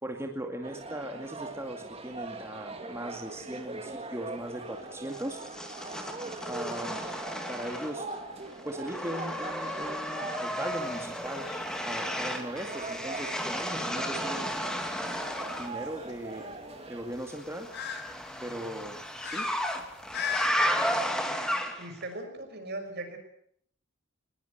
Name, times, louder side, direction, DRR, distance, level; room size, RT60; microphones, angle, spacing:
voice 1, 0.0-5.4 6.5-7.1 7.5-8.1 8.6-11.5 11.8-14.5 15.6-16.5 16.9-17.7 18.4-19.5, right 1 dB, 15° right, 2 dB, 2.3 m, -38 dB
sound 1, 0.6-17.1, right 3 dB, 30° right, 2.8 m, -41 dB
sound 2, 5.1-8.2 8.5-15.7 17.3-22.0, equal, 5° left, 2.7 m, -33 dB
sound 3, 10.7-20.5, left 7 dB, 60° left, 4.1 m, -42 dB
voice 2, 21.8-23.2, right 2 dB, 55° right, 6 dB, 5.9 m, -38 dB
22.0 x 20.5 x 8.1 m, 0.67 s
head